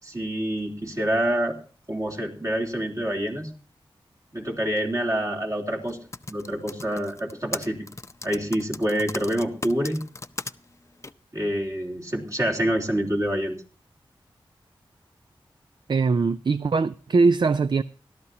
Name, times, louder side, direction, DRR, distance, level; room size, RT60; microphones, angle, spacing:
voice 1, 0.0-1.6 1.9-3.5 4.3-6.0 6.3-7.8 8.2-10.0 11.3-13.5, right 1 dB, 35° right, 3.4 m, -26 dB
Typing, 5.9-10.5 11.0-11.1, left 3 dB, 30° left, 0.6 m, -36 dB
voice 2, 15.9-17.8, right 4 dB, 55° right, 0.5 m, -21 dB
17.0 x 12.5 x 2.8 m
cardioid pair, 45°, 9 cm